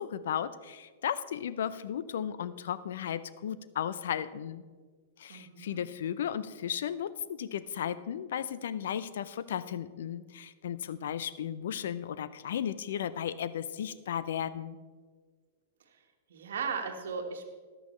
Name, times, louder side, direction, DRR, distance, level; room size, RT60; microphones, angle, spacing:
voice 1, 0.0-4.6 5.2-14.8, left 9 dB, 65° left, 16 dB, 0.5 m, -35 dB
voice 2, 5.3-5.8 16.3-17.4, right 5 dB, 70° right, 3 dB, 1.4 m, -36 dB
14.0 x 10.5 x 3.2 m, 1.5 s
hypercardioid pair, 105°, 0 cm